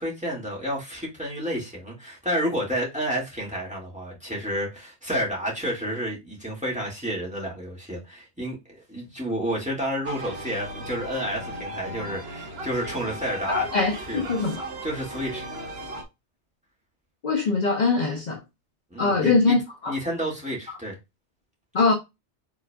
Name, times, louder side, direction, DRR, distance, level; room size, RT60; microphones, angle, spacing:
voice 1, 0.0-13.7 14.1-14.3 14.8-15.5 18.9-19.6 19.9-21.0, equal, 5° right, 1.9 m, -30 dB
sound 1, 10.0-16.0, right 1 dB, 65° right, 1.1 m, -37 dB
voice 2, 13.5-14.6 17.2-18.4 19.0-19.6 19.8-19.9 21.7-21.9, left 4 dB, 45° left, 0.7 m, -22 dB
5.0 x 3.7 x 2.3 m
omnidirectional pair, 1.2 m